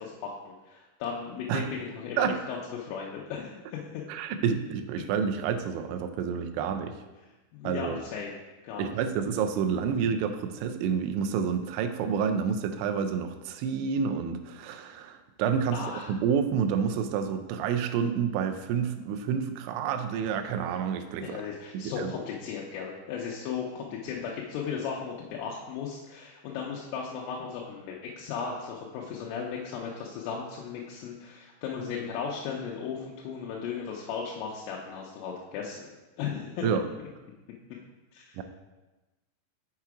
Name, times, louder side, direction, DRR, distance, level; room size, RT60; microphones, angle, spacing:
voice 1, 0.0-4.0 7.5-8.4 8.6-8.9 15.7-16.1 21.2-35.9 36.2-36.7 38.1-38.4, left 6 dB, 85° left, -3 dB, 3.3 m, -36 dB
voice 2, 4.1-7.0 7.6-8.0 8.8-21.5 21.7-22.1 36.6-36.8 38.4-38.5, right 7 dB, 80° right, 7 dB, 2.9 m, -29 dB
6.7 x 5.9 x 4.8 m, 1.1 s
omnidirectional pair, 5.6 m